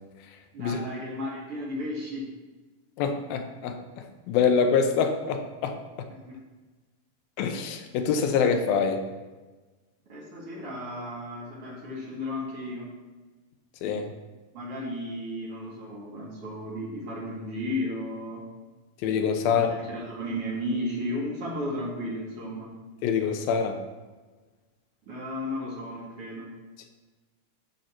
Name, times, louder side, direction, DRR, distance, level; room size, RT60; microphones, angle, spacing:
voice 1, 0.5-2.2 6.3-6.4 10.1-12.9 14.5-18.4 19.4-22.7 25.1-26.5, left 1 dB, 45° right, -5 dB, 2.6 m, -34 dB
voice 2, 3.0-3.8 4.3-5.8 7.4-9.0 13.8-14.1 19.0-19.7 23.0-23.8, left 6 dB, 85° left, 6 dB, 2.6 m, -25 dB
9.2 x 7.3 x 4.4 m, 1.2 s
omnidirectional pair, 4.1 m